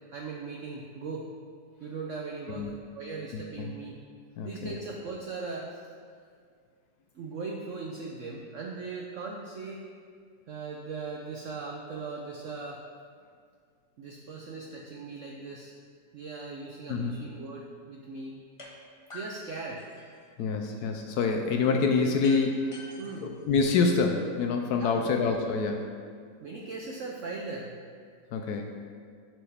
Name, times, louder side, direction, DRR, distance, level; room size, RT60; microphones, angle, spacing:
voice 1, 0.1-1.3 1.8-4.0 4.4-5.9 7.1-9.8 10.5-12.8 14.0-15.7 16.1-18.4 19.1-19.8 23.0-23.4 24.8-25.2 26.4-27.8, right 4 dB, 75° right, 0 dB, 0.7 m, -39 dB
voice 2, 3.3-3.7 4.4-4.7 16.9-17.2 20.4-22.8 23.2-25.8 28.3-28.8, left 4 dB, 70° left, 4 dB, 1.0 m, -27 dB
sound 1, 18.6-18.7 19.1-20.3 22.2-24.2, left 1 dB, 30° left, 0.6 m, -47 dB
11.0 x 4.7 x 3.4 m, 2.1 s
omnidirectional pair, 2.0 m